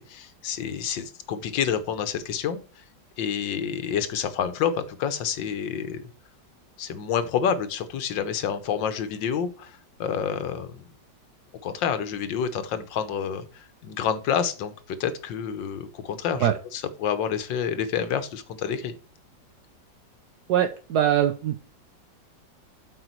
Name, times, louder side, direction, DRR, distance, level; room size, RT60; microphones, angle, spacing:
voice 1, 0.0-2.8 3.2-6.0 6.8-10.8 11.6-18.9, left 8 dB, 90° left, 10 dB, 1.7 m, -28 dB
voice 2, 20.5-21.6, right 10 dB, 70° right, 8 dB, 1.1 m, -22 dB
8.1 x 4.9 x 4.5 m, 0.38 s
omnidirectional pair, 2.0 m